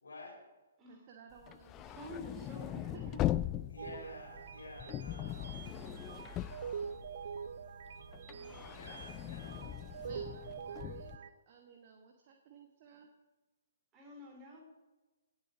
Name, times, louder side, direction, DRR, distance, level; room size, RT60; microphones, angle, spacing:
voice 1, 0.0-0.4 3.7-5.8 8.6-10.7, left 2 dB, 70° left, 1 dB, 4.1 m, -52 dB
voice 2, 0.9-3.3 10.0-13.1, right 6 dB, 35° right, 3 dB, 1.3 m, -56 dB
sound 1, 1.4-7.5 7.9-11.2, left 14 dB, 20° left, 0.3 m, -40 dB
voice 3, 1.8-3.3 8.2-8.8 13.9-14.6, left 1 dB, 20° right, -1 dB, 3.4 m, -50 dB
sound 2, 3.8-11.3, right 6 dB, 55° right, 0.6 m, -45 dB
17.5 x 8.4 x 3.8 m, 1.2 s
figure-of-eight pair, 125°, 0 cm